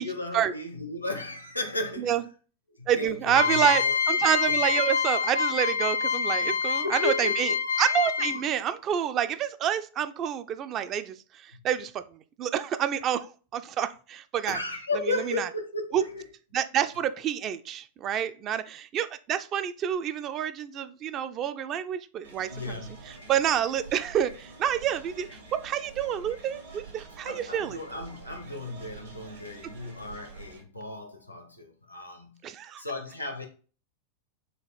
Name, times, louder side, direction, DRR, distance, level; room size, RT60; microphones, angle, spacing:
voice 1, 0.0-2.2 2.7-3.9 4.5-4.6 6.4-7.6 8.2-8.4 11.5-11.6 14.5-16.2 22.5-23.1 27.2-32.4 32.8-33.5, left 2 dB, 85° left, 0.8 m, -35 dB
voice 2, 2.9-7.5 7.8-11.2 11.6-11.9 12.4-13.3 13.5-14.6 15.1-15.5 15.9-16.0 16.5-22.8 23.3-27.8 32.4-32.8, right 9 dB, 30° right, 0.3 m, -28 dB
sound 1, 3.3-8.6, left 5 dB, 65° left, 0.4 m, -26 dB
sound 2, 22.2-30.6, right 3 dB, 70° right, 1.3 m, -47 dB
4.1 x 2.4 x 4.7 m
figure-of-eight pair, 90°, 0 cm